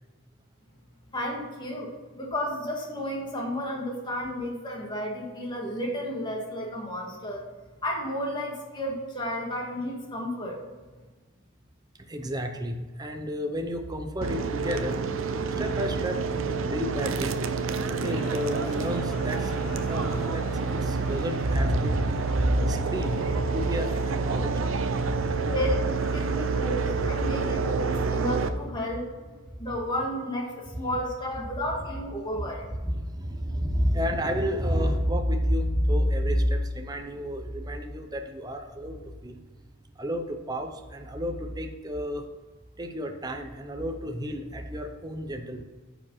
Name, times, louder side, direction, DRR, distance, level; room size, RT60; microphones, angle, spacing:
voice 1, 1.1-7.5 7.8-10.6 25.5-29.1 29.6-32.7, equal, 25° left, -1 dB, 2.0 m, -32 dB
voice 2, 12.1-15.0 15.6-16.3 16.6-17.3 17.9-25.5 27.2-27.3 32.8-39.4 40.0-42.3 42.8-45.6, equal, 20° right, 5 dB, 0.6 m, -30 dB
sound 1, 14.2-28.5, right 4 dB, 75° right, 0.6 m, -28 dB
sound 2, 18.0-27.6, equal, ahead, 2.6 m, -45 dB
9.5 x 5.0 x 5.6 m, 1.3 s
head